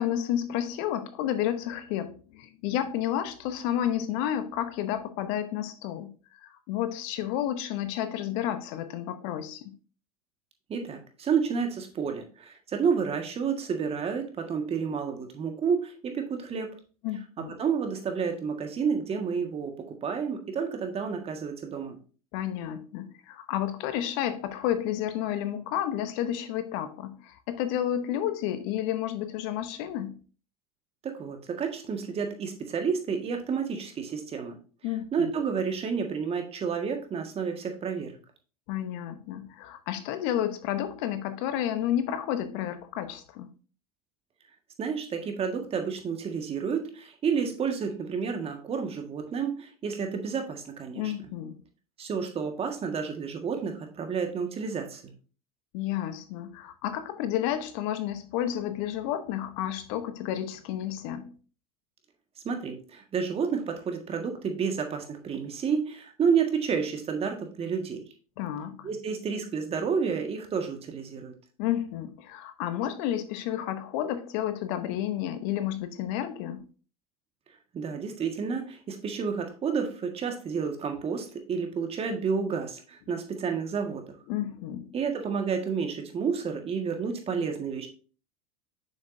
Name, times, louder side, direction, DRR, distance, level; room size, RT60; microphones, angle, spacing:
voice 1, 0.0-6.1 6.4-9.7 17.0-17.6 22.3-30.2 34.8-35.3 38.7-43.5 50.9-51.6 55.7-61.3 68.4-68.9 71.6-76.6 84.3-84.9, left 11 dB, 55° left, 0.9 m, -31 dB
voice 2, 10.7-16.7 17.6-19.7 20.0-22.0 31.0-34.6 35.1-38.1 44.8-51.1 52.0-55.1 62.4-68.0 68.8-71.3 77.7-84.0 84.9-87.9, right 6 dB, 30° right, 1.7 m, -30 dB
7.1 x 6.3 x 2.7 m
hypercardioid pair, 85°, 19 cm